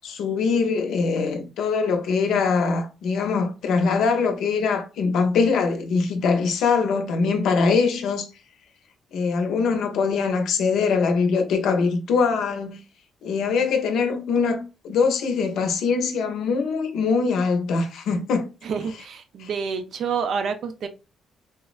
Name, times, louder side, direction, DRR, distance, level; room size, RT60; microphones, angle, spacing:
voice 1, 0.0-8.3 9.1-12.8 13.2-18.5 19.4-19.5, left 5 dB, 80° left, 0.6 m, -22 dB
voice 2, 18.6-20.9, right 6 dB, 65° right, 0.5 m, -28 dB
3.4 x 2.1 x 2.4 m
cardioid pair, 90°, 0 cm